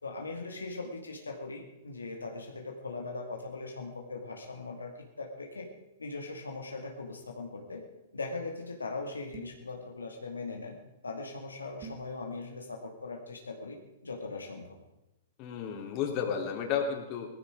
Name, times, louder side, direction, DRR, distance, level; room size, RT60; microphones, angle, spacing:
voice 1, 0.0-5.7 6.0-7.8 8.1-10.8 11.0-14.8, left 3 dB, 90° left, 2 dB, 2.2 m, -40 dB
sound 1, 9.3-9.7 11.8-12.1, right 6 dB, 35° right, 2.4 m, -46 dB
voice 2, 15.4-17.3, left 7 dB, 40° left, 2 dB, 3.1 m, -32 dB
18.0 x 14.5 x 5.0 m, 0.94 s
hypercardioid pair, 115°, 0 cm